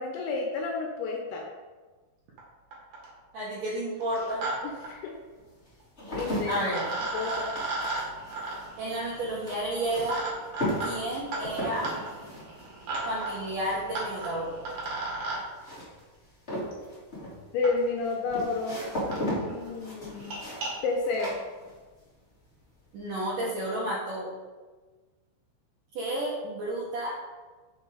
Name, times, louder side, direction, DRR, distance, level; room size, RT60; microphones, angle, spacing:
voice 1, 0.0-1.4 4.6-5.1 6.1-6.7 7.1-7.5 17.5-18.8 19.4-20.4 20.8-21.4, left 4 dB, 80° left, 1 dB, 2.9 m, -30 dB
sound 1, 2.4-2.5 2.7-3.2 4.0-4.5 4.8-4.9 6.2-6.3 6.7-15.4 16.7-16.8 17.6-17.7 18.4-18.5 18.7-18.8 19.1-19.2 19.5-19.7 20.1-20.7, right 2 dB, 50° right, 2.9 m, -35 dB
voice 2, 3.3-4.5 6.4-6.9 8.8-10.2 10.8-11.9 13.1-14.5 22.9-24.3 25.9-27.2, right 1 dB, 75° right, -6 dB, 1.9 m, -31 dB
sound 2, 4.1-4.2 4.9-22.1 22.4-22.9, equal, 35° left, 1.0 m, -37 dB
7.0 x 5.8 x 4.9 m, 1.3 s
omnidirectional pair, 5.7 m